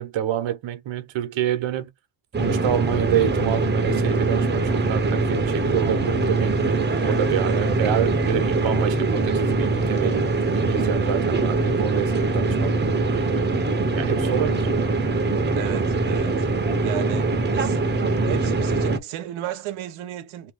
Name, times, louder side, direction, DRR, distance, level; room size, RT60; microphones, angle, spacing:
voice 1, 0.0-1.9 2.4-13.4 14.0-14.7, right 10 dB, 65° right, 1.0 m, -27 dB
sound 1, 2.3-19.0, right 3 dB, 20° right, 0.8 m, -22 dB
voice 2, 15.6-16.4 16.8-17.8 18.1-20.5, right 12 dB, 90° right, 1.0 m, -34 dB
3.0 x 2.2 x 3.7 m
cardioid pair, 110°, 47 cm